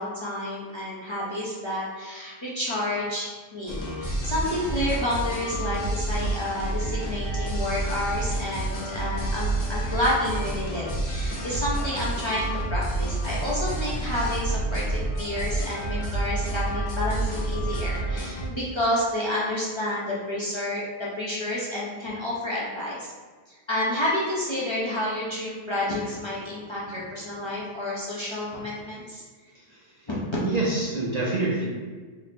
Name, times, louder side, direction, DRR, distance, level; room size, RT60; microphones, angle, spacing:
voice 1, 0.0-23.1 23.5-29.2 30.1-30.2, left 1 dB, 30° left, -7 dB, 0.6 m, -30 dB
sound 1, 3.7-18.5, right 2 dB, 75° left, 1.0 m, -29 dB
voice 2, 30.4-31.7, right 2 dB, 50° right, -5 dB, 0.6 m, -26 dB
3.1 x 2.1 x 4.1 m, 1.4 s
omnidirectional pair, 1.1 m